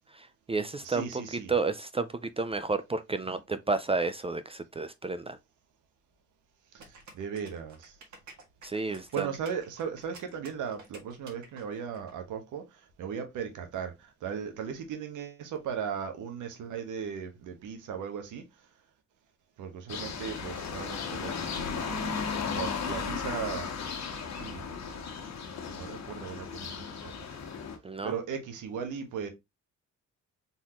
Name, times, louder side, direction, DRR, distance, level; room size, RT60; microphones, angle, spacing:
voice 1, 0.1-1.1 1.5-5.4 8.6-9.3 27.8-28.1, right 3 dB, 20° right, 0.4 m, -31 dB
voice 2, 0.8-1.5 6.7-8.0 8.9-18.7 19.6-24.6 25.7-27.4 28.0-29.3, right 7 dB, 85° right, 1.3 m, -38 dB
sound 1, 6.8-12.1, right 3 dB, 65° right, 1.9 m, -51 dB
sound 2, 19.9-27.8, left 5 dB, 60° left, 1.3 m, -35 dB
4.3 x 3.6 x 2.9 m
cardioid pair, 90°, 30 cm